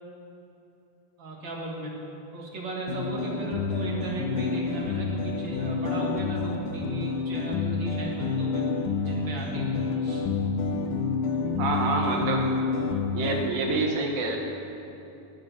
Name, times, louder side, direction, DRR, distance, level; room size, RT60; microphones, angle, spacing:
voice 1, 1.2-1.9 2.3-8.6 9.0-10.3, right 2 dB, 40° right, -2 dB, 1.8 m, -36 dB
sound 1, 2.9-13.5, left 4 dB, 70° left, 2.4 m, -28 dB
voice 2, 11.6-12.5 13.1-14.4, right 3 dB, 70° right, 2 dB, 3.0 m, -27 dB
19.0 x 6.6 x 7.3 m, 2.9 s
omnidirectional pair, 4.3 m